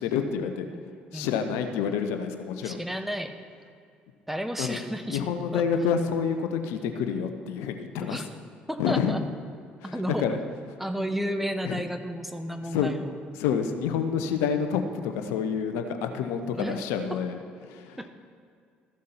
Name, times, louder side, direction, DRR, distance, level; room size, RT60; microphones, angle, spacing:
voice 1, 0.0-2.8 4.6-4.8 5.1-8.3 8.8-9.1 9.8-10.4 11.6-11.8 12.6-12.9 13.3-18.0, left 7 dB, 70° left, 7 dB, 0.9 m, -28 dB
voice 2, 0.7-1.4 2.6-3.4 4.3-5.2 5.5-5.6 8.0-8.3 8.7-9.2 9.9-10.2 10.8-13.1 16.5-16.8 17.1-17.2 18.0-18.1, equal, 5° right, 7 dB, 1.1 m, -32 dB
14.0 x 7.5 x 5.7 m, 2.3 s
hypercardioid pair, 50°, 5 cm